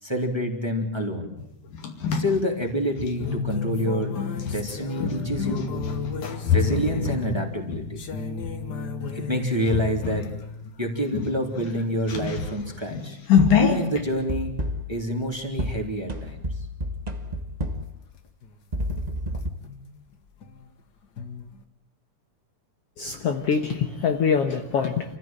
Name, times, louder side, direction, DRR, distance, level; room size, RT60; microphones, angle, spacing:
voice 1, 0.0-1.3 2.1-4.1 4.5-5.7 6.5-8.1 9.1-10.3 10.8-13.2 13.6-14.6 14.9-16.4, equal, 10° right, 1 dB, 3.2 m, -27 dB
sound 1, 1.4-3.4 4.3-8.6 9.0-9.3 9.7-10.3 10.7-10.8 11.1-14.0, left 7 dB, 75° left, 3.9 m, -26 dB
sound 2, 3.1-10.8 14.1-14.4 14.8-15.9 18.1-18.2 18.4-18.8 19.3-20.7 21.2-21.6, left 5 dB, 40° left, 1.6 m, -33 dB
sound 3, 13.4-13.8 14.3-15.0 15.6-18.0 18.7-19.5, equal, 30° right, 0.8 m, -30 dB
voice 2, 23.0-25.0, left 6 dB, 60° left, 5 dB, 2.1 m, -24 dB
28.0 x 15.5 x 9.1 m, 0.77 s
omnidirectional pair, 3.5 m